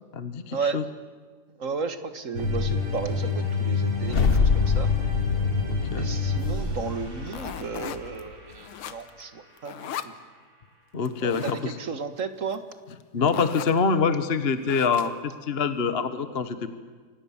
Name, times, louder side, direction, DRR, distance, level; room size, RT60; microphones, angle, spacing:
voice 1, 0.1-0.8 5.7-6.1 10.9-11.8 13.1-16.7, left 5 dB, 35° left, 11 dB, 1.2 m, -25 dB
voice 2, 1.6-4.9 5.9-9.9 11.2-12.6, right 5 dB, 40° right, 10 dB, 1.7 m, -33 dB
sound 1, 2.3-8.7, left 4 dB, 80° right, 8.7 m, -29 dB
sound 2, 4.0-8.3, left 5 dB, 60° left, 0.6 m, -26 dB
sound 3, 7.3-8.2 8.5-9.2 9.6-10.2 11.0-11.6 12.5-12.6 12.9-13.0 13.3-13.8 14.6-15.3, left 9 dB, 80° left, 2.0 m, -37 dB
29.5 x 25.0 x 7.3 m, 1.5 s
omnidirectional pair, 2.3 m